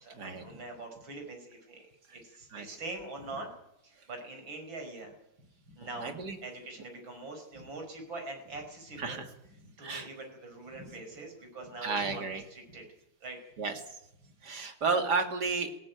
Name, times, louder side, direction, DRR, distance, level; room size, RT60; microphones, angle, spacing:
voice 1, 0.0-3.5 3.8-5.1 5.7-9.2 9.6-12.8 13.2-13.4 14.2-14.3, right 2 dB, 75° right, 4 dB, 6.0 m, -43 dB
voice 2, 6.0-6.4 9.0-9.3 9.8-10.1 11.8-12.4 13.6-13.7 14.4-15.7, right 4 dB, 55° right, 7 dB, 2.8 m, -32 dB
19.0 x 18.0 x 9.3 m, 0.83 s
omnidirectional pair, 2.1 m